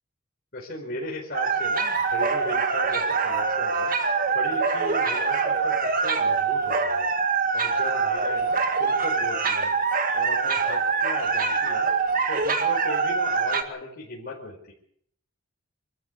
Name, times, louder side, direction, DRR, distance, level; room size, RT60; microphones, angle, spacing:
voice 1, 0.5-4.0 4.3-9.8 10.1-11.9 12.3-14.7, left 2 dB, 45° left, -2 dB, 4.6 m, -37 dB
sound 1, 1.3-13.6, right 5 dB, 40° right, 2.0 m, -24 dB
24.5 x 14.0 x 8.3 m, 0.67 s
head